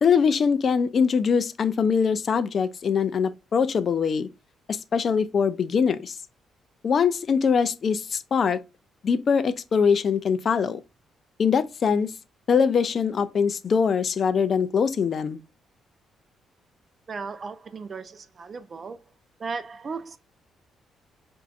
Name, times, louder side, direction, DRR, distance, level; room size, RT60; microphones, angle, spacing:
voice 1, 0.0-4.3 4.7-6.2 6.8-8.6 9.0-10.8 11.4-12.1 12.5-15.4, left 6 dB, 50° left, 0.4 m, -22 dB
voice 2, 17.1-19.0 19.4-20.2, right 4 dB, 40° right, 0.5 m, -36 dB
4.5 x 2.6 x 2.4 m
cardioid pair, 90°, 0 cm